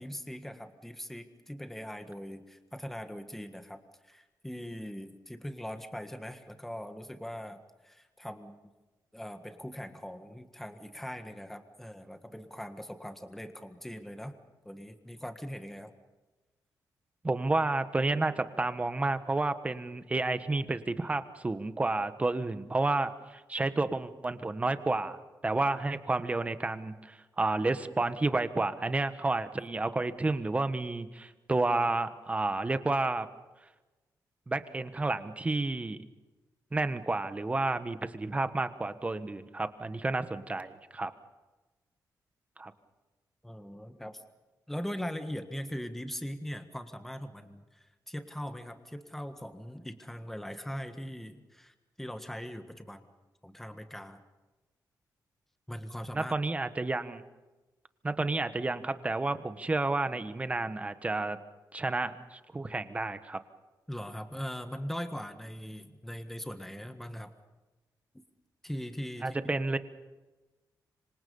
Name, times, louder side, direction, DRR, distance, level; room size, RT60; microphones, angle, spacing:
voice 1, 0.0-8.6 9.1-14.3 14.6-15.9 43.4-44.2 44.7-53.1 53.4-54.2 55.7-56.4 63.9-67.3 68.6-69.4, equal, 5° left, 7 dB, 1.6 m, -41 dB
voice 2, 17.2-33.3 34.5-36.0 36.7-41.1 42.6-42.7 56.1-57.2 58.0-61.4 61.7-63.4 69.2-69.8, right 2 dB, 20° right, 11 dB, 1.3 m, -31 dB
26.5 x 25.0 x 5.5 m, 1.2 s
wide cardioid pair, 125°, 7 cm